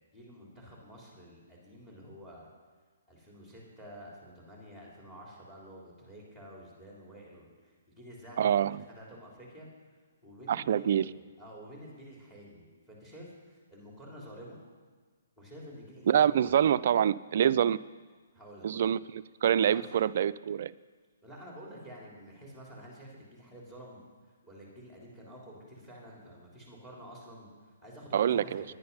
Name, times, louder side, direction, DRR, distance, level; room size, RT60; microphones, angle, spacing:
voice 1, 0.1-2.5 3.1-9.7 10.2-14.6 15.4-16.6 18.3-18.9 19.6-19.9 21.2-24.0 24.4-28.6, equal, 10° left, -4 dB, 3.6 m, -49 dB
voice 2, 8.4-8.8 10.5-11.1 16.1-17.8 18.6-20.7 28.1-28.6, right 9 dB, 55° right, 16 dB, 0.3 m, -26 dB
10.5 x 9.5 x 5.5 m, 1.5 s
hypercardioid pair, 135°, 0 cm